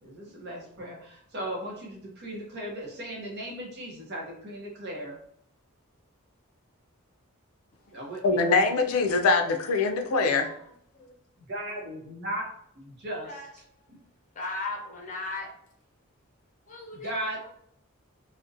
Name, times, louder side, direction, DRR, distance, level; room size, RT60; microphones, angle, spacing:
voice 1, 0.0-5.2 7.9-8.4 11.5-13.4 13.9-14.0 16.9-17.5, right 1 dB, 50° right, -1 dB, 0.7 m, -37 dB
voice 2, 8.2-10.5, left 3 dB, 75° left, 6 dB, 0.4 m, -23 dB
voice 3, 14.3-15.5 16.7-17.1, left 3 dB, 35° left, 0 dB, 0.7 m, -36 dB
2.5 x 2.1 x 2.5 m, 0.70 s
head